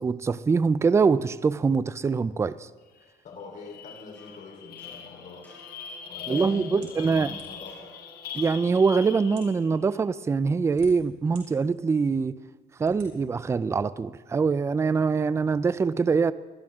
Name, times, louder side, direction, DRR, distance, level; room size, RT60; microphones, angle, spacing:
voice 1, 0.0-2.7 6.3-7.4 8.3-12.4 12.8-16.3, right 5 dB, 15° right, 17 dB, 0.3 m, -24 dB
sound 1, 3.0-3.1 3.4-9.8, left 8 dB, 65° left, 1.1 m, -41 dB
voice 2, 3.2-5.5 6.0-8.0, left 3 dB, 50° left, -1 dB, 3.7 m, -43 dB
sound 2, 3.7-9.6, right 1 dB, 10° left, 5.8 m, -55 dB
sound 3, 6.8-7.8 8.6-8.7 9.2-9.6 10.4-11.4 12.0-12.1 12.8-13.1, right 4 dB, 80° right, 3.8 m, -50 dB
20.0 x 12.0 x 3.6 m, 1.3 s
cardioid pair, 110°, 17 cm